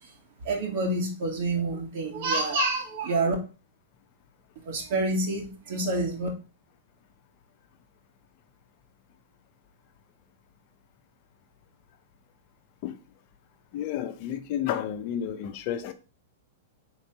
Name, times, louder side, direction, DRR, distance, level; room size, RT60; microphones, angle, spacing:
voice 1, 0.4-3.3 4.7-6.3, right 2 dB, 60° right, 2.4 m, -27 dB
voice 2, 13.7-15.9, left 10 dB, 50° left, 0.9 m, -31 dB
4.4 x 4.1 x 5.4 m
hypercardioid pair, 120°, 0 cm